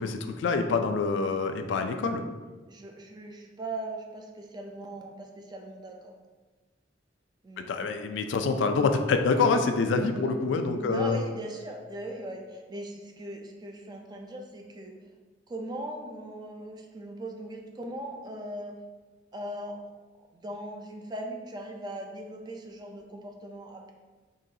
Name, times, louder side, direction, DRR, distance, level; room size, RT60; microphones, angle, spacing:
voice 1, 0.0-2.2 7.6-11.2, left 4 dB, 75° left, 6 dB, 0.3 m, -26 dB
voice 2, 2.7-6.1 7.4-7.7 10.2-10.4 10.8-14.9 15.5-18.8 19.3-19.9 20.3-23.9, right 1 dB, 25° right, 2 dB, 0.4 m, -39 dB
3.8 x 3.0 x 2.7 m, 1.3 s
head